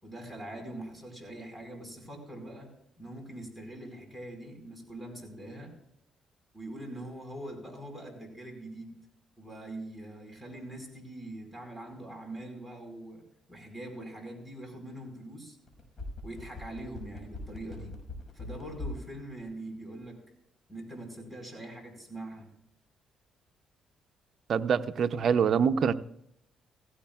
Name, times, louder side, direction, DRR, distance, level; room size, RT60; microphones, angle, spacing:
voice 1, 0.0-2.7 3.0-5.7 6.5-9.0 9.4-13.2 13.5-15.6 16.2-17.9 18.3-20.2 20.7-22.5, right 1 dB, ahead, 5.0 m, -43 dB
sound 1, 15.7-19.1 19.4-19.5, left 2 dB, 35° left, 5.9 m, -40 dB
voice 2, 24.5-25.9, right 6 dB, 60° right, 0.6 m, -25 dB
16.5 x 16.0 x 2.4 m
cardioid pair, 90°, 0 cm